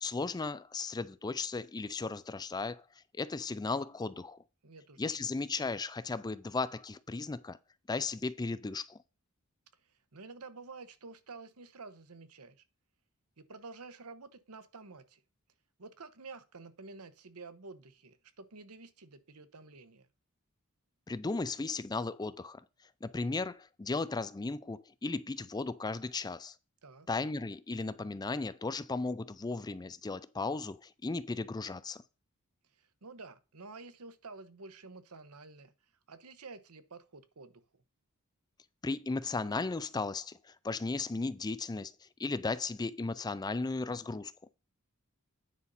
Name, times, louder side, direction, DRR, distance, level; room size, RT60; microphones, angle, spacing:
voice 1, 0.0-2.8 3.2-4.4 5.0-7.6 7.9-9.0 21.1-22.6 23.0-26.5 27.1-32.0 38.8-40.4 40.6-41.9 42.2-44.3, left 3 dB, 20° left, 0.4 m, -35 dB
voice 2, 4.6-5.3 10.1-12.6 13.4-15.2 15.8-20.1 26.8-27.1 32.8-35.7 36.1-37.6, right 3 dB, 80° right, 1.1 m, -50 dB
9.6 x 5.4 x 4.1 m
head